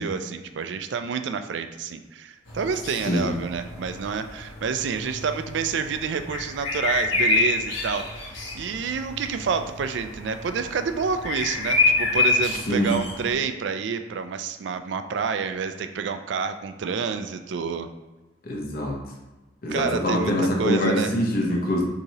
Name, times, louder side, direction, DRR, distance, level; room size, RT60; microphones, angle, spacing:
voice 1, 0.0-17.9 19.7-21.1, right 5 dB, 70° right, 9 dB, 0.4 m, -28 dB
sound 1, 2.5-13.3, left 3 dB, 85° left, 1.4 m, -27 dB
voice 2, 18.4-19.0 19.6-21.8, left 1 dB, 50° left, -1 dB, 0.9 m, -24 dB
6.4 x 2.9 x 2.8 m, 1.1 s
head